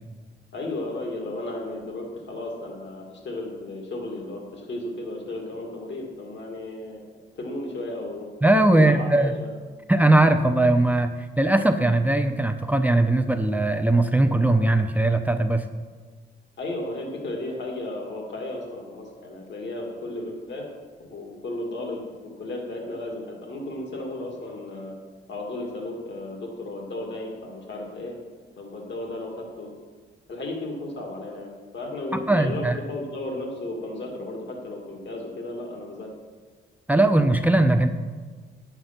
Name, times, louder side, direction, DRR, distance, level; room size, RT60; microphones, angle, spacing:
voice 1, 0.5-7.0 7.4-8.3 8.7-9.5 16.6-20.7 21.1-24.9 25.3-28.2 28.6-29.7 30.3-36.1, left 2 dB, 60° left, 0 dB, 2.1 m, -34 dB
voice 2, 8.4-9.3 9.9-15.6 32.3-32.8 36.9-37.9, right 2 dB, 10° right, 7 dB, 0.6 m, -20 dB
10.0 x 8.1 x 5.8 m, 1.4 s
cardioid pair, 100°, 21 cm